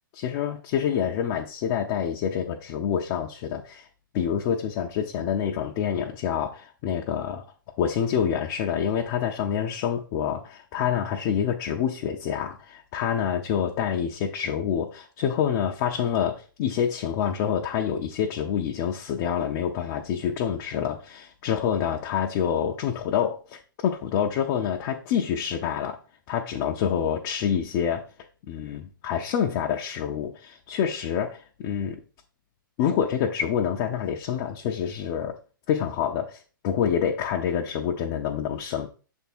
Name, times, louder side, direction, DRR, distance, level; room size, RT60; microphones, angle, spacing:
voice 1, 0.1-3.9 4.1-7.4 7.8-26.0 26.3-28.0 28.5-32.0 32.8-35.4 35.7-38.9, left 8 dB, 35° left, 0.6 m, -27 dB
6.7 x 3.6 x 4.3 m
hypercardioid pair, 140°, 12 cm